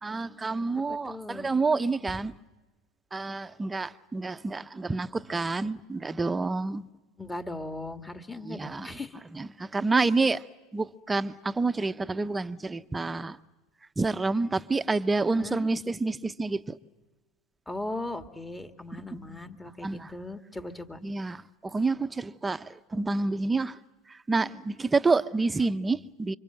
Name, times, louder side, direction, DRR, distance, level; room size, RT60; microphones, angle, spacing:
voice 1, 0.0-2.3 3.1-6.8 8.4-8.9 9.3-10.4 10.7-13.4 14.0-16.8 19.1-19.3 19.8-20.1 21.0-23.8 24.1-26.4, right 3 dB, 15° right, 0.9 m, -28 dB
voice 2, 0.9-1.5 7.2-9.2 15.3-15.7 17.7-21.0, left 2 dB, 10° left, 1.9 m, -38 dB
29.0 x 25.0 x 7.8 m
hypercardioid pair, 90°, 0 cm